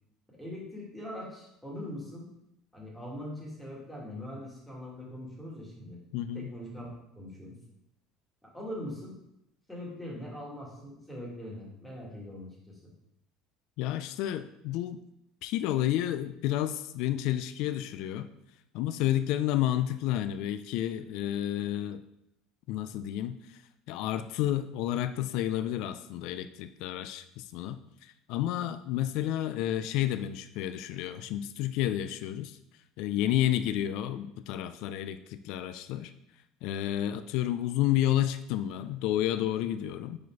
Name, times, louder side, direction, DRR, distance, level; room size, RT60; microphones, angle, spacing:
voice 1, 0.3-2.3 2.7-6.0 6.3-7.6 8.4-9.2 9.7-12.9, left 1 dB, ahead, -4 dB, 2.2 m, -42 dB
voice 2, 6.1-6.5 13.8-15.0 15.4-18.3 18.7-22.0 22.7-23.6 23.9-32.6 33.0-36.1 36.6-40.2, left 12 dB, 70° left, 11 dB, 0.3 m, -30 dB
4.7 x 4.3 x 4.6 m, 0.80 s
supercardioid pair, 115°, 0 cm